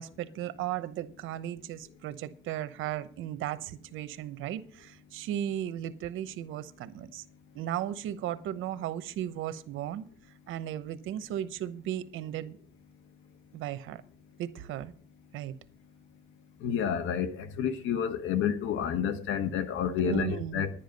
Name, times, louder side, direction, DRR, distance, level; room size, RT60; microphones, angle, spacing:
voice 1, 0.0-7.2 7.5-10.1 10.5-12.6 13.5-14.0 14.4-14.9 15.3-15.5 20.0-20.7, right 11 dB, 90° right, 0.9 m, -36 dB
voice 2, 16.6-20.7, left 8 dB, 90° left, 1.3 m, -29 dB
11.0 x 10.5 x 5.3 m
cardioid pair, 90°, 20 cm